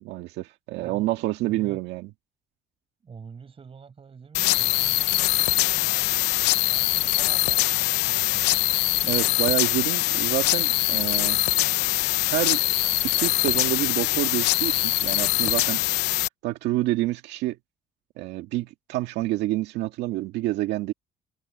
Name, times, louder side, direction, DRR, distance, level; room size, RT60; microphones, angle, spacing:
voice 1, 0.0-2.1 9.0-11.4 12.2-12.6 13.1-15.8 16.4-17.6 18.2-20.9, right 17 dB, 90° right, 2.0 m, -28 dB
voice 2, 0.8-1.1 1.4-1.8 3.0-8.7, right 6 dB, 35° right, 7.3 m, -46 dB
sound 1, 4.3-16.3, left 19 dB, 90° left, 0.7 m, -23 dB
cardioid pair, 110°, 17 cm